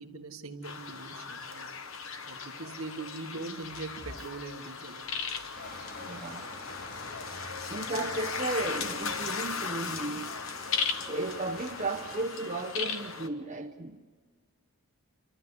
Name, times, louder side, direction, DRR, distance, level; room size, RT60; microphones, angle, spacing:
voice 1, 0.0-1.7 2.2-5.1, right 3 dB, 65° right, 1.5 m, -41 dB
sound 1, 0.6-13.3, left 5 dB, 60° left, 1.1 m, -37 dB
sound 2, 3.6-9.2, left 1 dB, 75° left, 2.8 m, -54 dB
sound 3, 5.5-12.2, left 1 dB, 40° left, 2.3 m, -46 dB
voice 2, 5.7-6.6 7.7-10.4 11.1-14.0, right 2 dB, 30° right, 0.8 m, -35 dB
28.0 x 13.0 x 9.8 m
head